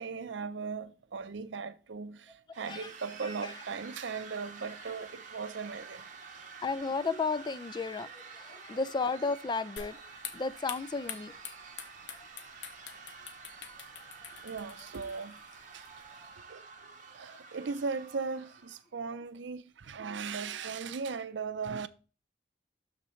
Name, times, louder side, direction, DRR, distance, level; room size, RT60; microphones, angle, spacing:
voice 1, 0.0-6.0 14.4-15.4 15.7-16.9 17.1-21.9, right 5 dB, 80° right, 0.6 m, -38 dB
sound 1, 2.5-18.8, right 5 dB, 45° right, 1.3 m, -49 dB
voice 2, 6.6-10.0 10.3-11.3, left 4 dB, 25° left, 0.3 m, -33 dB
sound 2, 9.8-16.3, left 7 dB, 80° left, 0.9 m, -47 dB
12.5 x 4.3 x 3.1 m
head